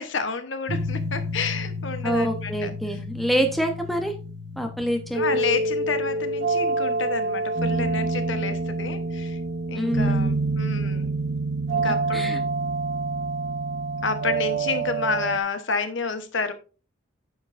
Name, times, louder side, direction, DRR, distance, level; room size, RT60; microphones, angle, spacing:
voice 1, 0.0-2.7 3.3-3.5 5.1-9.4 9.7-11.1 11.7-12.4 14.0-16.5, left 4 dB, 75° left, 9 dB, 1.0 m, -30 dB
sound 1, 0.7-15.4, right 2 dB, 60° right, 0.9 m, -27 dB
voice 2, 2.0-4.1 4.6-5.2 9.7-10.4 11.8-12.4, equal, ahead, 4 dB, 0.9 m, -26 dB
9.2 x 7.2 x 2.6 m, 0.34 s
head